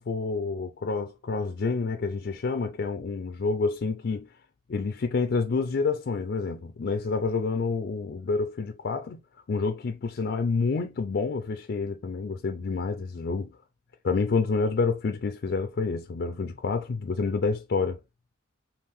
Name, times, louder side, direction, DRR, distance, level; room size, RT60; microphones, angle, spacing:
voice 1, 0.0-4.3 4.7-9.2 9.5-13.6 14.0-18.0, left 4 dB, 50° left, 0.4 m, -28 dB
5.4 x 2.4 x 3.1 m
head